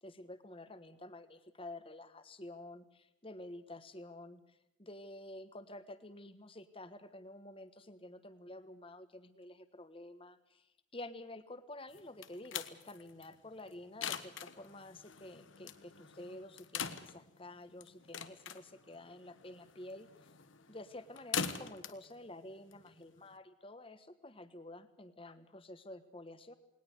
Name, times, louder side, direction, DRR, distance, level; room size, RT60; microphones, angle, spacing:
voice 1, 0.0-20.1 20.7-26.5, left 1 dB, 30° left, 11 dB, 1.4 m, -50 dB
sound 1, 11.9-23.4, left 7 dB, 80° left, 1.4 m, -44 dB
20.0 x 19.0 x 8.1 m, 0.89 s
head